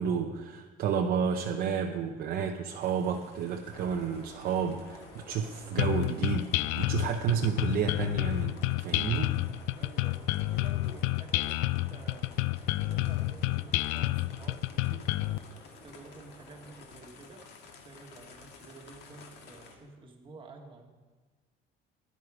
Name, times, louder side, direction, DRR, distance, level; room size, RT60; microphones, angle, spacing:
voice 1, 0.0-9.4, right 7 dB, 45° right, 2 dB, 0.8 m, -31 dB
sound 1, 2.8-19.8, left 5 dB, 55° left, 1.9 m, -55 dB
sound 2, 3.7-16.8, left 2 dB, 25° left, 2.9 m, -52 dB
sound 3, 5.8-15.4, left 18 dB, 80° left, 0.4 m, -29 dB
voice 2, 9.8-12.4 12.8-15.1 15.8-20.9, right 3 dB, 25° right, 2 dB, 1.5 m, -50 dB
17.0 x 11.0 x 4.9 m, 1.3 s
cardioid pair, 175°, 21 cm